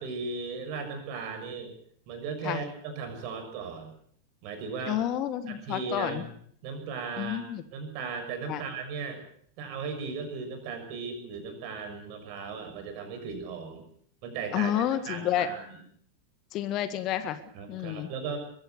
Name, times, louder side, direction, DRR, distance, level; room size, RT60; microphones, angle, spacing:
voice 1, 0.0-1.7 2.1-3.9 4.4-5.0 5.5-6.3 6.6-7.4 7.7-9.2 9.6-13.9 14.2-15.8 17.5-18.4, right 5 dB, 45° right, 6 dB, 6.4 m, -37 dB
voice 2, 4.9-6.2 7.2-7.6 8.5-8.6 14.5-15.5 16.5-17.4 17.7-18.1, left 11 dB, 35° left, 12 dB, 1.5 m, -30 dB
22.5 x 15.5 x 8.2 m, 0.62 s
figure-of-eight pair, 90°, 0 cm